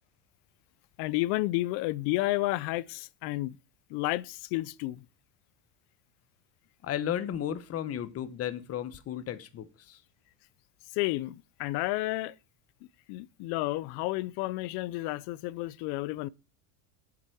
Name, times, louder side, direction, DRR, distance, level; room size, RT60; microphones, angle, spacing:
voice 1, 1.0-3.6 3.9-5.1 10.9-12.3 13.1-16.3, left 19 dB, 60° left, 0.6 m, -31 dB
voice 2, 6.8-10.0, left 10 dB, 35° left, 1.0 m, -34 dB
8.0 x 7.3 x 4.6 m
supercardioid pair, 130°, 44 cm